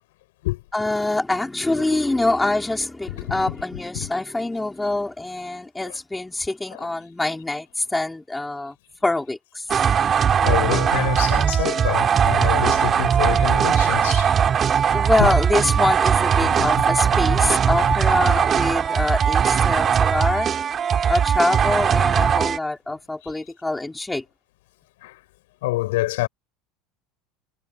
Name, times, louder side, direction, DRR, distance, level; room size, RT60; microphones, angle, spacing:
voice 1, 0.7-8.7 9.0-9.6 14.9-20.5 21.1-24.2, left 2 dB, 10° left, 4.7 m, -24 dB
voice 2, 3.1-3.5 3.9-4.1 5.9-6.0 6.7-6.9 10.4-14.3 15.2-15.3 16.6-16.7 19.0-19.1 20.2-20.4 21.0-21.1 25.0-25.2 25.6-26.3, left 19 dB, 85° left, 7.5 m, -27 dB
sound 1, 9.7-22.6, right 8 dB, 35° right, 3.4 m, -19 dB
supercardioid pair, 105°, 0 cm